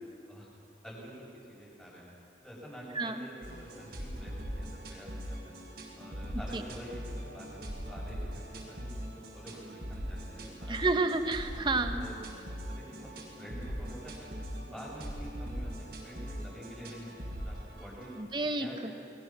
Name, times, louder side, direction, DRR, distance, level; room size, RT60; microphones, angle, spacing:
voice 1, 0.8-2.1 2.4-5.5 6.0-8.9 9.3-11.0 11.9-12.2 12.7-18.1 18.6-18.9, equal, 5° left, -6 dB, 8.0 m, -47 dB
sound 1, 3.4-18.2, equal, 60° right, 4.4 m, -41 dB
voice 2, 10.7-12.1 18.2-18.9, right 3 dB, 25° right, 7 dB, 1.3 m, -30 dB
29.5 x 21.5 x 6.2 m, 2.5 s
head